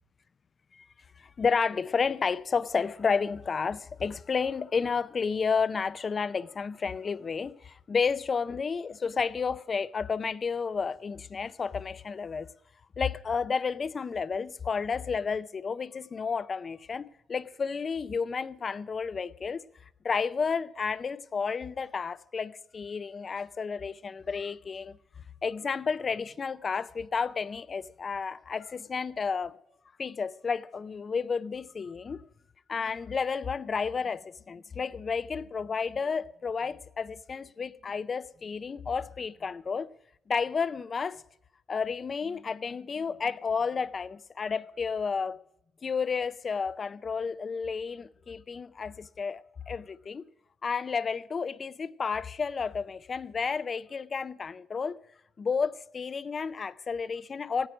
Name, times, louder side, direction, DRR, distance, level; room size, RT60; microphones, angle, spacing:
voice 1, 1.2-12.5 13.0-19.6 20.0-25.0 25.4-29.6 30.0-32.2 32.7-39.9 40.3-41.2 41.7-45.4 45.8-50.2 50.6-55.0 55.4-57.7, left 5 dB, 40° left, 0.4 m, -31 dB
16.0 x 9.2 x 6.2 m
cardioid pair, 90°, 0 cm